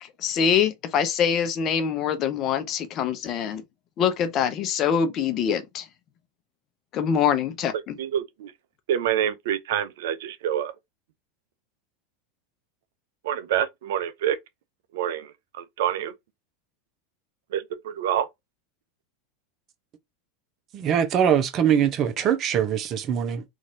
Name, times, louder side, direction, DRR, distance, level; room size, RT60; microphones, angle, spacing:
voice 1, 0.0-3.6 4.0-5.9 6.9-8.0, left 7 dB, 45° left, 0.7 m, -24 dB
voice 2, 8.0-8.5 8.9-10.7 13.2-14.4 14.9-15.3 15.6-16.1 17.5-18.3, right 10 dB, 70° right, 0.4 m, -27 dB
voice 3, 20.7-23.4, right 9 dB, 40° right, 0.8 m, -22 dB
3.0 x 2.7 x 2.6 m
hypercardioid pair, 90°, 0 cm